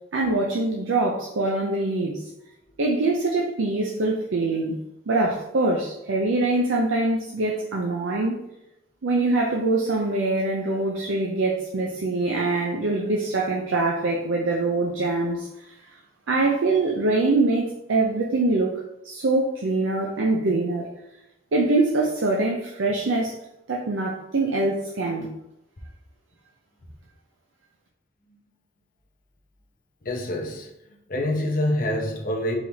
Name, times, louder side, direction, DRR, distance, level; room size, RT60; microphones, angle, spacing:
voice 1, 0.1-2.2 2.8-4.8 5.1-8.4 9.0-15.5 16.3-20.9 21.5-23.3 23.7-25.3, right 2 dB, 85° right, -1 dB, 0.6 m, -24 dB
voice 2, 30.0-30.7 31.1-32.6, left 1 dB, 45° left, 1 dB, 0.8 m, -26 dB
4.7 x 3.5 x 2.8 m, 0.85 s
head